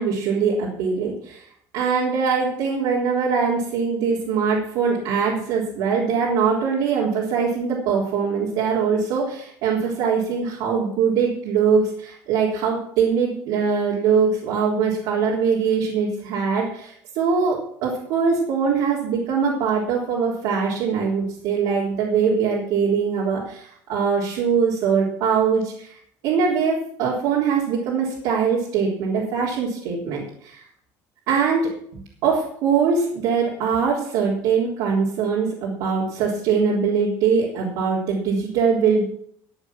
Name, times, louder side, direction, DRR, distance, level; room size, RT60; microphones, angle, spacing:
voice 1, 0.0-1.4 1.7-30.6 31.3-31.7 32.2-39.0, right 6 dB, 70° right, -5 dB, 3.7 m, -22 dB
14.5 x 8.3 x 6.1 m, 0.65 s
cardioid pair, 165°, 7 cm